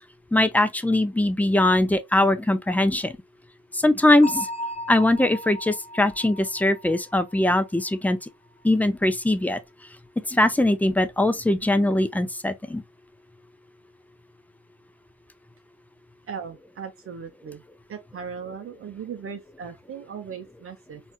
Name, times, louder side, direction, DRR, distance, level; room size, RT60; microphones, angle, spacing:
voice 1, 0.3-3.1 3.7-4.5 4.9-8.2 8.6-9.6 10.3-12.8, left 1 dB, 5° left, 0.4 m, -21 dB
Bell, 4.2-7.9, equal, 20° left, 1.1 m, -36 dB
voice 2, 16.3-17.6 17.9-21.0, right 6 dB, 45° right, 0.6 m, -38 dB
4.0 x 2.4 x 2.3 m
cardioid pair, 90°, 30 cm